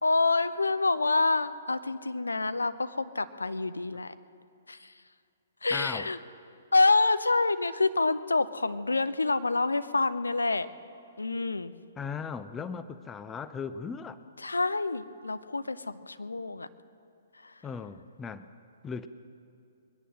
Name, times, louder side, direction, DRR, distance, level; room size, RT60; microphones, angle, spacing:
voice 1, 0.0-4.1 4.7-4.9 5.6-6.2 6.7-10.7 11.2-11.7 14.4-16.7 17.4-17.5, left 3 dB, 75° left, 13 dB, 0.6 m, -27 dB
voice 2, 5.7-6.1 12.0-14.2 17.6-18.5 18.8-19.1, left 6 dB, 15° left, 12 dB, 0.5 m, -37 dB
22.5 x 10.0 x 6.3 m, 2.5 s
figure-of-eight pair, 120°, 0 cm